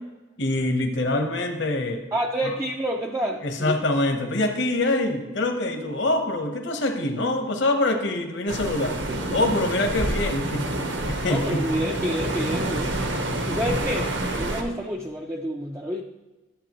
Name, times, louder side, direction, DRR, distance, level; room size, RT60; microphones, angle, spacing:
voice 1, 0.4-2.0 3.4-9.0 9.3-10.7 11.1-11.6, left 2 dB, 60° left, 4 dB, 0.9 m, -24 dB
voice 2, 2.1-3.7 11.2-13.0 13.5-16.0, right 1 dB, 15° right, 1 dB, 0.4 m, -28 dB
sound 1, 8.5-14.6, right 1 dB, 65° right, 1.1 m, -28 dB
11.5 x 7.9 x 3.0 m, 1.2 s
head